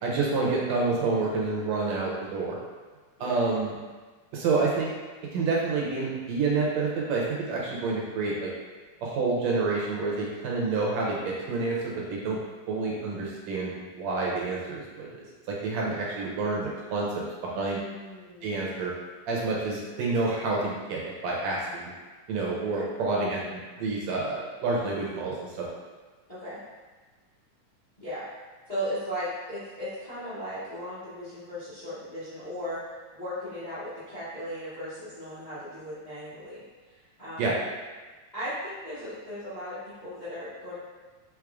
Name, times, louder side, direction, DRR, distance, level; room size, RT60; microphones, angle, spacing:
voice 1, 0.0-2.6 3.2-3.7 4.3-4.9 5.3-8.5 9.0-12.4 12.7-15.2 15.5-17.8 18.4-18.9 19.3-21.9 22.3-25.7 37.4-37.5, right 3 dB, 75° right, -3 dB, 1.8 m, -28 dB
voice 2, 17.4-18.6 22.5-22.9 26.3-26.6 28.0-28.2 28.7-32.8 33.1-37.5 38.3-40.8, equal, 65° left, -13 dB, 0.4 m, -37 dB
4.8 x 3.7 x 2.4 m, 1.3 s
omnidirectional pair, 3.4 m